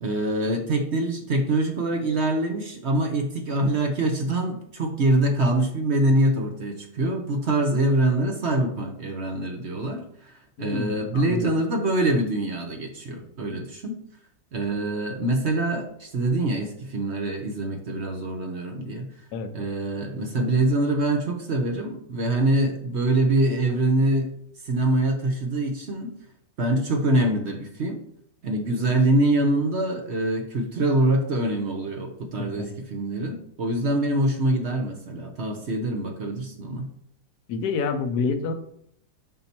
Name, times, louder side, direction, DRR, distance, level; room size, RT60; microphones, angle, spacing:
voice 1, 0.0-10.3 10.6-14.0 14.5-19.1 19.5-24.3 24.6-26.1 26.6-28.0 28.4-36.9, right 1 dB, 50° right, 4 dB, 0.9 m, -24 dB
voice 2, 10.6-11.5 19.3-19.5 32.4-32.7 37.5-38.5, left 4 dB, 70° left, 7 dB, 1.2 m, -28 dB
7.4 x 5.6 x 2.9 m, 0.70 s
omnidirectional pair, 1.7 m